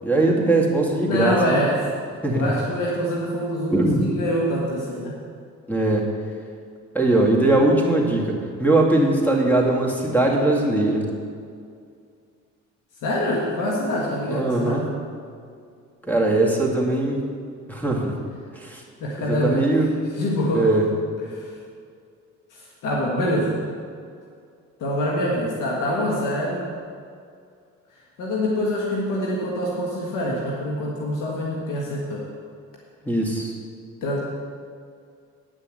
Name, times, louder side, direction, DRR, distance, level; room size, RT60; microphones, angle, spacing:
voice 1, 0.0-1.6 2.2-2.6 3.7-4.1 5.7-6.1 6.9-11.1 14.3-14.8 16.0-17.2 17.7-18.2 18.6-18.8 19.2-19.9 20.5-20.9 33.0-33.5, right 2 dB, 5° left, -1 dB, 2.3 m, -20 dB
voice 2, 1.0-1.9 2.3-5.1 13.0-14.8 19.0-19.7 20.1-20.7 21.3-21.5 22.5-23.6 24.8-26.6 28.2-32.2 34.0-34.2, equal, 90° left, -3 dB, 1.6 m, -25 dB
9.9 x 6.6 x 7.8 m, 2.3 s
cardioid pair, 90°, 30 cm